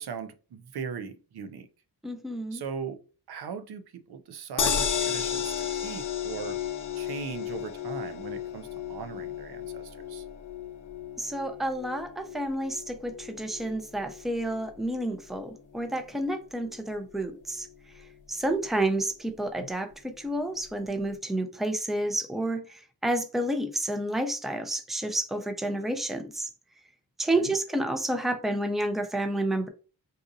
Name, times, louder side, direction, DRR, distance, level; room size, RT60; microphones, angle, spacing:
voice 1, 0.0-1.7 2.5-3.0 3.3-6.6 7.0-10.3 19.6-19.7 27.3-27.5, right 6 dB, 75° right, 0.6 m, -39 dB
voice 2, 2.0-2.6 11.2-17.7 18.3-26.5 27.2-29.7, right 1 dB, ahead, 0.5 m, -30 dB
sound 1, 4.6-16.8 17.2-17.3 17.6-17.7, left 8 dB, 55° left, 0.7 m, -34 dB
3.9 x 2.6 x 2.5 m
cardioid pair, 70°, 39 cm